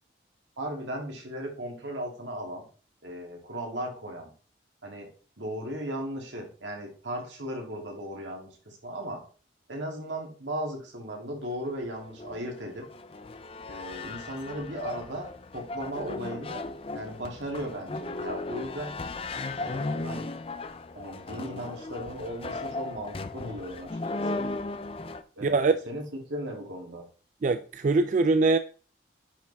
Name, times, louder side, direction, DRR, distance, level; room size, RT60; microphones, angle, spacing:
voice 1, 0.6-2.6 3.0-4.3 4.8-5.1 5.4-9.2 9.7-12.8 13.7-16.6 16.9-18.9 19.6-20.3 20.9-24.5 25.4-27.0, equal, 80° right, 2.6 m, -36 dB
sound 1, 11.7-25.2, left 3 dB, 30° left, 0.5 m, -36 dB
voice 2, 25.4-25.7 27.4-28.6, right 3 dB, 40° right, 0.3 m, -22 dB
10.0 x 4.7 x 3.4 m
head